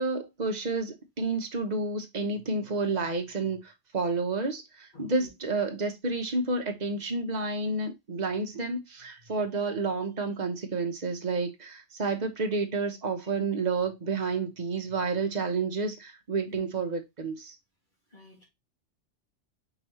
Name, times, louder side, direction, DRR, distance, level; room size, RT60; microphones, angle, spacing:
voice 1, 0.0-17.5, right 3 dB, 40° right, 1.0 m, -30 dB
voice 2, 4.9-5.3 13.2-13.3 16.5-16.6 18.1-18.5, left 2 dB, 45° left, 1.4 m, -49 dB
5.2 x 3.2 x 2.9 m
omnidirectional pair, 1.2 m